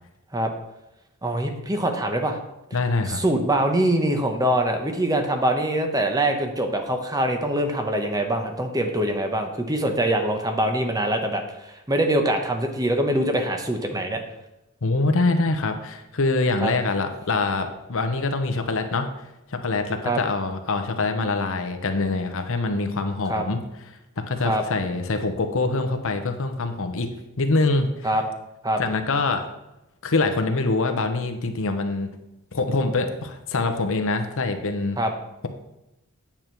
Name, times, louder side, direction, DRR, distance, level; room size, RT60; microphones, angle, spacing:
voice 1, 1.2-2.4 3.0-14.2 16.6-16.7 20.0-20.2 23.3-23.5 24.4-24.6 28.0-28.2 28.6-28.8 35.0-35.1, right 1 dB, 15° right, 5 dB, 0.9 m, -24 dB
voice 2, 2.7-3.2 14.8-19.1 19.5-23.6 24.2-27.1 27.4-27.9 28.8-29.4 30.0-32.1 32.5-35.0, left 3 dB, 65° left, 6 dB, 1.0 m, -24 dB
9.0 x 7.2 x 4.6 m, 0.92 s
head